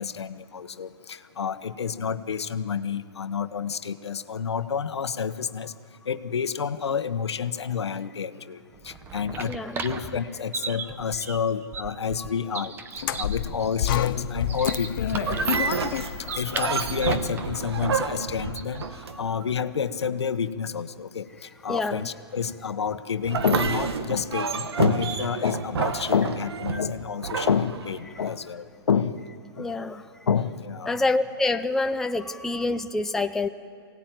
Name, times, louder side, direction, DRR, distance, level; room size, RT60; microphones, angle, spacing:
voice 1, 0.0-5.7 6.1-8.6 8.8-9.5 9.8-12.7 13.2-15.5 16.3-18.8 19.2-21.3 21.6-29.2 29.6-29.7 30.3-30.9, left 7 dB, 90° left, 11 dB, 1.1 m, -29 dB
sound 1, 8.7-19.0, right 6 dB, 15° right, 0.9 m, -37 dB
voice 2, 9.5-9.9 12.2-12.3 15.5-15.7 16.3-16.4 19.1-19.4 21.7-22.0 29.6-30.1 30.9-33.5, left 2 dB, 5° left, 7 dB, 0.5 m, -27 dB
sound 2, 13.0-18.2, left 10 dB, 55° left, 0.8 m, -30 dB
sound 3, 15.2-19.5 23.2-28.3, right 6 dB, 75° right, 1.6 m, -29 dB
23.0 x 18.0 x 9.2 m, 2.4 s
hypercardioid pair, 145°, 14 cm